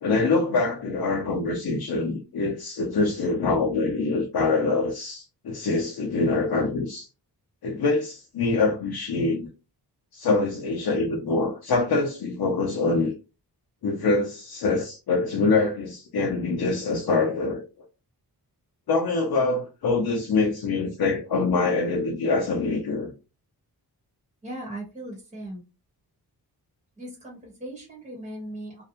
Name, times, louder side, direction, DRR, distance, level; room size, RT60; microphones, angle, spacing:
voice 1, 0.0-7.1 7.6-9.5 10.1-13.1 13.8-17.6 18.9-23.1, left 3 dB, 65° left, 0.6 m, -24 dB
voice 2, 24.4-25.6 27.0-28.8, right 1 dB, 20° right, 1.0 m, -38 dB
2.6 x 2.1 x 2.7 m
wide cardioid pair, 165°, 39 cm